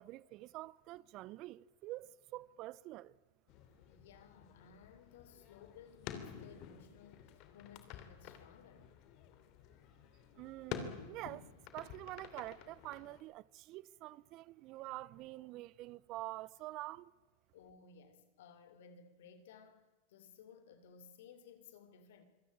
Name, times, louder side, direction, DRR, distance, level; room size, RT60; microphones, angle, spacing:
voice 1, 0.0-3.2 10.4-17.1, right 17 dB, 50° right, 0.6 m, -47 dB
sound 1, 3.5-13.2, left 9 dB, 50° left, 3.0 m, -50 dB
voice 2, 3.9-8.9 17.5-19.8 20.1-22.2, left 6 dB, 75° left, 3.2 m, -59 dB
25.5 x 17.0 x 8.7 m
hypercardioid pair, 115°, 0 cm